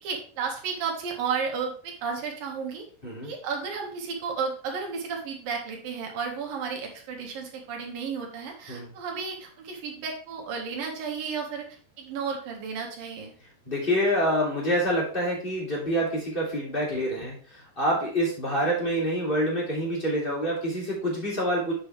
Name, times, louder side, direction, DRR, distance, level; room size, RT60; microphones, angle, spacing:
voice 1, 0.0-2.8 3.2-11.7 12.0-13.3, right 5 dB, 65° right, 1 dB, 3.2 m, -33 dB
voice 2, 13.7-21.7, equal, 15° left, -4 dB, 2.3 m, -27 dB
8.8 x 6.4 x 3.4 m, 0.43 s
omnidirectional pair, 4.8 m